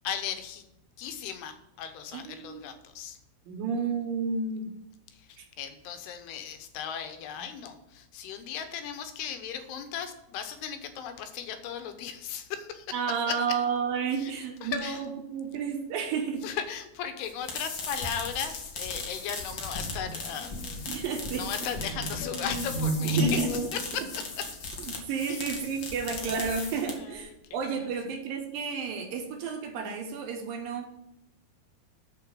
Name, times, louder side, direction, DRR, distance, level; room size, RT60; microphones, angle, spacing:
voice 1, 0.0-0.6 1.0-3.2 5.1-13.0 13.3-13.4 14.2-14.3 14.6-15.0 16.4-20.5 21.3-24.1 24.4-24.5 25.3-25.5 27.0-27.2 27.8-27.9, left 8 dB, 85° left, 8 dB, 2.9 m, -36 dB
voice 2, 2.1-2.7 3.5-4.7 5.4-5.5 12.9-16.5 20.9-21.5 23.2-23.5 24.9-30.9, right 6 dB, 70° right, 4 dB, 2.5 m, -31 dB
sound 1, 17.2-27.2, left 4 dB, 70° left, 1.1 m, -38 dB
sound 2, 19.5-23.7, right 1 dB, 40° left, 1.3 m, -32 dB
7.1 x 6.0 x 7.6 m, 0.81 s
omnidirectional pair, 4.6 m